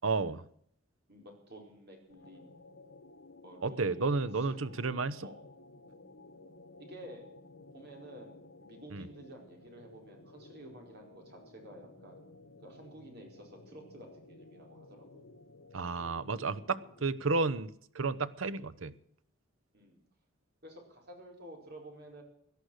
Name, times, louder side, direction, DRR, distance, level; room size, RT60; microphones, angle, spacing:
voice 1, 0.0-0.4 3.6-5.3 8.9-9.1 15.7-18.9, right 3 dB, 75° right, 16 dB, 0.9 m, -32 dB
voice 2, 1.1-2.7 3.4-4.1 4.5-4.7 5.2-5.4 6.8-7.3 7.7-12.2 12.6-15.2 19.7-20.0 20.6-22.2, right 1 dB, 50° right, 2 dB, 4.8 m, -51 dB
sound 1, 2.1-17.2, left 2 dB, 75° left, 1.9 m, -55 dB
17.5 x 11.5 x 6.5 m, 0.68 s
head